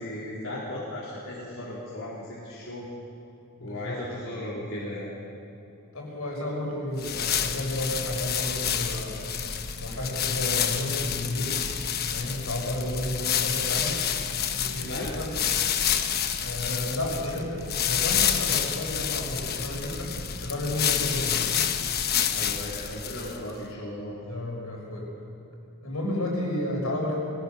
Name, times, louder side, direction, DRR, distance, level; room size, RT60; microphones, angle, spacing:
voice 1, 0.0-2.9 3.6-5.1 14.7-15.1 22.3-24.2, left 1 dB, 60° left, -7 dB, 3.9 m, -36 dB
voice 2, 3.6-4.3 5.9-9.2 9.8-11.6 12.1-14.0 14.5-15.3 16.4-21.4 24.2-25.1 25.8-27.2, left 1 dB, 80° left, -1 dB, 6.3 m, -32 dB
sound 1, 7.0-23.5, left 8 dB, 45° left, 1.1 m, -28 dB
23.5 x 17.5 x 6.9 m, 2.9 s
head